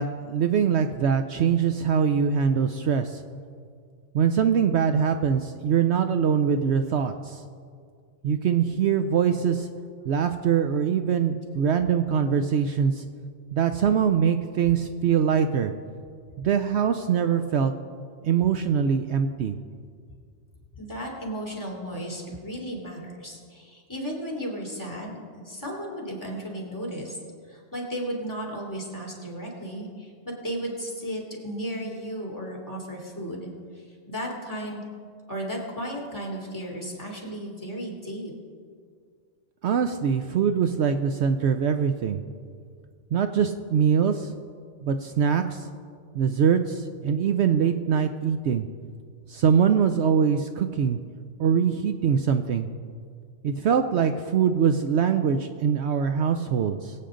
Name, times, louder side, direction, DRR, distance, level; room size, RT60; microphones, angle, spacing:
voice 1, 0.0-3.2 4.1-7.4 8.2-9.7 10.1-13.0 13.5-15.7 16.4-17.7 18.2-19.6 39.6-42.2 43.1-44.3 44.8-45.7 46.1-48.7 49.3-51.0 51.4-52.7 53.4-56.9, right 7 dB, 70° right, 8 dB, 0.8 m, -23 dB
voice 2, 20.7-25.2 25.4-27.2 27.5-33.5 34.1-34.8 35.3-38.3, equal, 15° left, -2 dB, 2.7 m, -34 dB
22.5 x 8.6 x 3.8 m, 2.1 s
omnidirectional pair, 1.3 m